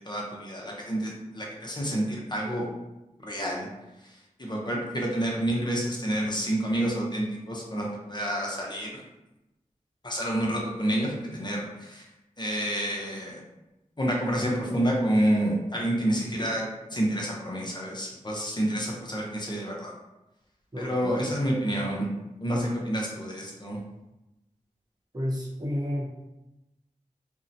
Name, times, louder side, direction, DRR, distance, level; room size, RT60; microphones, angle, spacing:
voice 1, 0.0-2.7 3.2-3.7 4.1-9.0 10.0-12.0 12.4-13.4 14.0-19.9 20.8-22.1 22.4-23.8, right 1 dB, 35° left, -2 dB, 0.6 m, -29 dB
voice 2, 20.7-21.2 25.1-26.1, left 1 dB, 30° right, -5 dB, 0.8 m, -31 dB
2.7 x 2.0 x 2.6 m, 0.97 s
wide cardioid pair, 55°, 14 cm